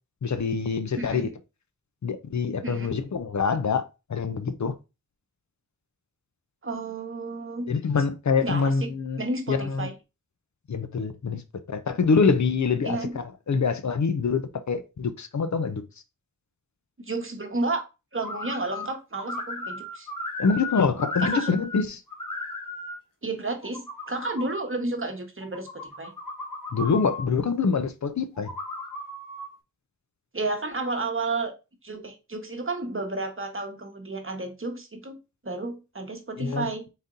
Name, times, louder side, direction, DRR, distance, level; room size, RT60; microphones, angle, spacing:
voice 1, 0.2-1.3 2.0-3.8 4.1-4.7 7.7-9.2 9.5-9.9 10.7-11.4 11.7-15.8 20.4-22.0 26.7-28.5 36.4-36.7, left 5 dB, 60° left, 0.5 m, -25 dB
voice 2, 1.0-1.3 2.6-3.0 6.6-7.7 8.4-8.9 9.2-9.9 12.8-13.2 17.1-17.8 18.1-20.1 21.2-21.5 23.2-26.1 30.3-31.5 31.8-35.2 35.4-36.9, right 2 dB, 40° right, 1.0 m, -31 dB
sound 1, 18.2-18.9 19.2-21.8 22.1-22.9 23.5-24.5 25.4-27.2 28.3-29.5, left 2 dB, 80° left, 1.2 m, -35 dB
4.0 x 2.7 x 3.6 m
wide cardioid pair, 50°, 32 cm